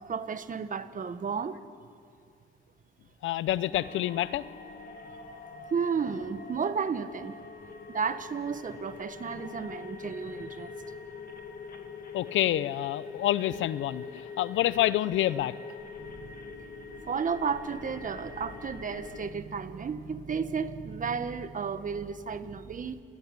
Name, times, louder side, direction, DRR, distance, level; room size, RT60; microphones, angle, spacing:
voice 1, 0.0-1.6 5.1-5.2 5.7-7.3 7.9-10.7 16.0-16.3 17.1-23.0, right 6 dB, 40° right, 11 dB, 1.5 m, -33 dB
voice 2, 3.2-4.5 12.1-15.5, left 13 dB, 80° left, 17 dB, 0.8 m, -27 dB
sound 1, 3.7-19.3, left 4 dB, 50° left, 2.5 m, -44 dB
29.0 x 19.5 x 9.9 m, 2.3 s
cardioid pair, 90°, 20 cm